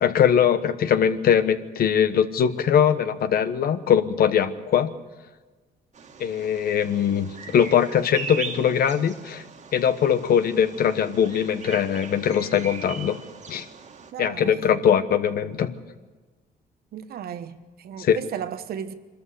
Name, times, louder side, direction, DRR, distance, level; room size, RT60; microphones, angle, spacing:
voice 1, 0.0-4.9 6.2-9.4 9.7-13.2 13.5-13.6 14.2-15.7 18.0-18.2, left 8 dB, 70° left, 1.2 m, -21 dB
Bird vocalization bird call bird song, 5.9-14.1, right 6 dB, 50° right, 1.9 m, -40 dB
voice 2, 14.1-14.8 16.9-18.9, right 9 dB, 75° right, 1.2 m, -35 dB
24.0 x 13.5 x 8.3 m
cardioid pair, 100°, 16 cm